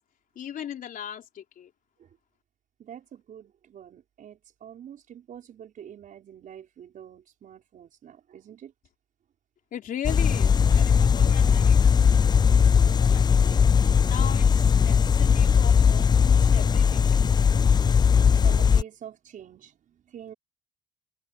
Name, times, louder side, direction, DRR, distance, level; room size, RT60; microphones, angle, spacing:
voice 1, 0.4-1.7 9.7-12.5 12.8-13.7 14.0-17.2, left 10 dB, 55° left, 4.0 m, -39 dB
voice 2, 2.8-8.7 18.4-20.3, right 9 dB, 50° right, 5.2 m, -45 dB
sound 1, 10.0-18.8, left 6 dB, 25° left, 0.5 m, -19 dB
cardioid pair, 110°, 17 cm